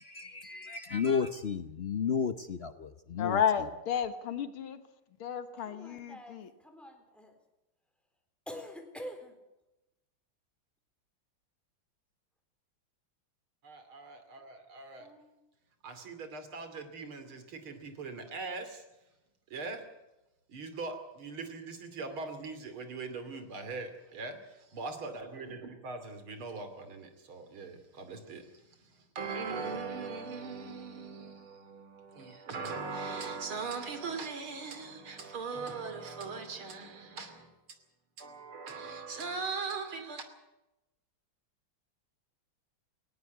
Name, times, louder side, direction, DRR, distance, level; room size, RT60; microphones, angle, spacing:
voice 1, 0.0-3.4, left 6 dB, 55° left, 0.6 m, -33 dB
voice 2, 3.2-4.8 5.2-6.5, left 8 dB, 90° left, 2.2 m, -32 dB
voice 3, 5.6-7.4 8.5-9.4 15.0-15.4, equal, ahead, 3.9 m, -47 dB
voice 4, 13.6-15.1 15.8-18.8 19.5-19.8 20.5-37.5 38.2-40.2, right 4 dB, 80° right, 3.6 m, -40 dB
19.5 x 17.5 x 8.2 m
omnidirectional pair, 2.3 m